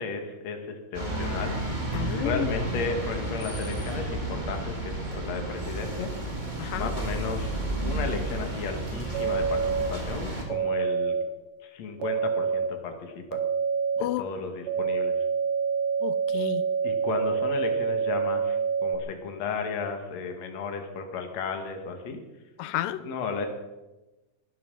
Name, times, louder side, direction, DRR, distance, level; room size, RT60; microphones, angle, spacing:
voice 1, 0.0-1.5 2.2-6.1 6.7-7.6 7.8-11.2 11.6-13.4 14.0-15.1 16.8-22.2 23.0-23.5, left 5 dB, 55° left, 4 dB, 3.0 m, -34 dB
sound 1, 0.9-10.4, right 1 dB, 15° right, 2.2 m, -32 dB
voice 2, 1.9-2.5 6.6-6.9 14.0-14.2 16.0-16.6 22.6-23.0, left 13 dB, 85° left, 15 dB, 2.4 m, -31 dB
sound 2, 9.1-9.9 10.5-11.2 12.0-12.7 13.3-14.0 14.7-19.0, right 6 dB, 75° right, 3.1 m, -26 dB
19.5 x 13.0 x 5.6 m, 1.1 s
omnidirectional pair, 3.8 m